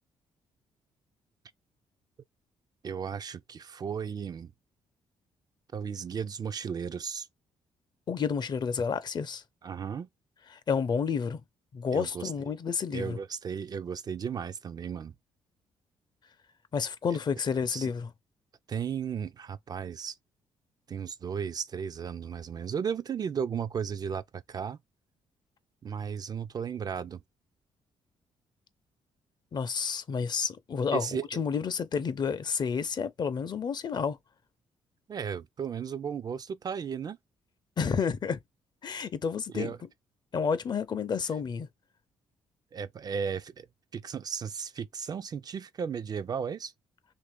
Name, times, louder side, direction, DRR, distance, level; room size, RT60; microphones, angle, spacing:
voice 1, 2.8-4.5 5.7-7.3 9.6-10.1 11.9-12.3 12.9-15.1 17.7-17.9 18.7-20.2 20.9-24.8 25.8-27.2 30.9-31.3 35.1-37.2 39.5-39.8 42.7-43.7 43.9-46.7, right 7 dB, 40° right, 0.3 m, -35 dB
voice 2, 8.1-9.4 10.7-11.4 11.7-13.2 16.7-18.1 29.5-34.2 37.8-38.4 38.8-39.7 40.3-41.7, left 6 dB, 45° left, 0.5 m, -30 dB
2.9 x 2.6 x 3.4 m
cardioid pair, 85°, 10 cm